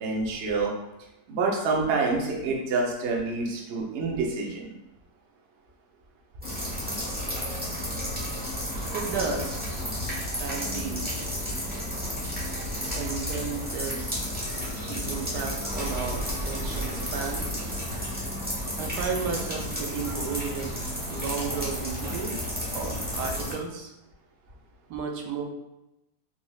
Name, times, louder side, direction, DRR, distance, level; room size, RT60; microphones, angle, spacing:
voice 1, 0.0-0.7 1.3-4.7, right 3 dB, 60° right, -1 dB, 0.8 m, -27 dB
sound 1, 6.4-23.5, equal, 10° right, 0.6 m, -32 dB
voice 2, 8.9-9.6 10.4-11.3 12.9-14.3 14.8-17.7 18.8-20.7 21.1-23.9 24.9-25.5, right 5 dB, 80° right, 2 dB, 1.2 m, -34 dB
4.1 x 3.1 x 2.3 m, 0.92 s
omnidirectional pair, 1.8 m